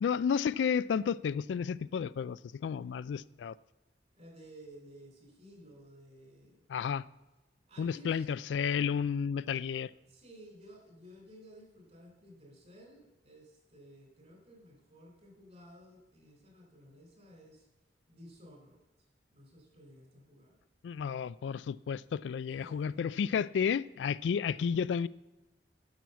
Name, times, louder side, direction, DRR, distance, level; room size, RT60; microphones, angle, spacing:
voice 1, 0.0-3.6 6.7-7.1 7.8-9.9 20.8-25.1, left 7 dB, 90° left, 0.3 m, -32 dB
voice 2, 4.2-6.6 7.7-8.3 10.1-17.7 18.1-18.8 19.3-20.5 22.5-23.1, equal, 40° right, 3.8 m, -55 dB
10.5 x 6.3 x 6.9 m
head